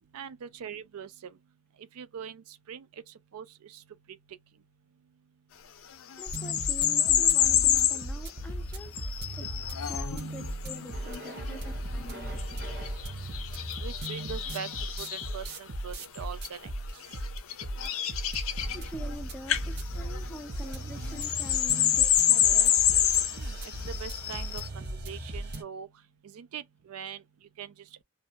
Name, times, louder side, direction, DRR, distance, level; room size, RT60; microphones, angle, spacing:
voice 1, 0.1-1.3 2.0-2.8 3.3-3.8 13.8-14.7 15.0-16.7 23.3-23.6 23.9-25.9 26.3-27.2 27.6-27.7, right 8 dB, 85° right, 0.4 m, -41 dB
sound 1, 6.1-8.0 8.8-15.4 16.2-16.5 17.0-19.2 19.5-19.7 19.9-24.7, left 10 dB, 70° left, 0.4 m, -28 dB
voice 2, 6.2-9.0 9.3-9.5 9.9-12.8 18.7-22.9, equal, 5° left, 0.4 m, -45 dB
sound 2, 6.3-25.6, right 1 dB, 45° right, 0.7 m, -37 dB
2.7 x 2.1 x 2.8 m
head